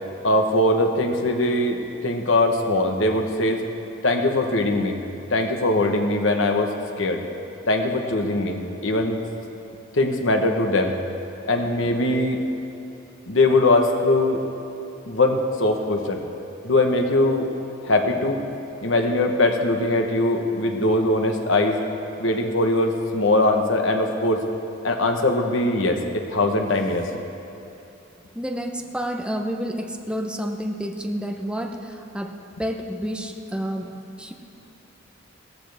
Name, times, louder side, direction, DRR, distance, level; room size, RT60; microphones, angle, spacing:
voice 1, 0.2-3.6 4.0-5.0 5.3-7.2 7.7-9.2 9.9-11.0 11.5-12.4 13.3-14.4 15.1-16.2 16.6-17.5 17.8-18.4 18.8-21.8 22.2-24.4 24.8-27.1, left 2 dB, 70° left, 4 dB, 1.2 m, -21 dB
voice 2, 28.3-31.8 32.1-32.3 32.6-33.9 34.2-34.3, equal, 5° right, 3 dB, 0.8 m, -29 dB
17.0 x 14.5 x 3.5 m, 2.8 s
head